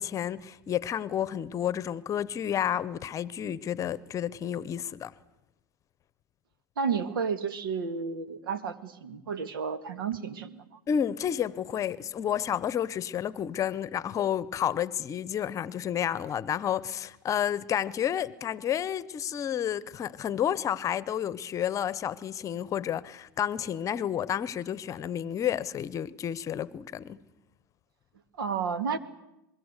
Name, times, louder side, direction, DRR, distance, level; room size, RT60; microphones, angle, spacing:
voice 1, 0.0-5.1 10.9-27.2, left 9 dB, 30° left, 0.9 m, -30 dB
voice 2, 6.8-10.8 28.4-29.0, right 6 dB, 90° right, 2.2 m, -32 dB
25.5 x 22.0 x 8.2 m
supercardioid pair, 125°, 11 cm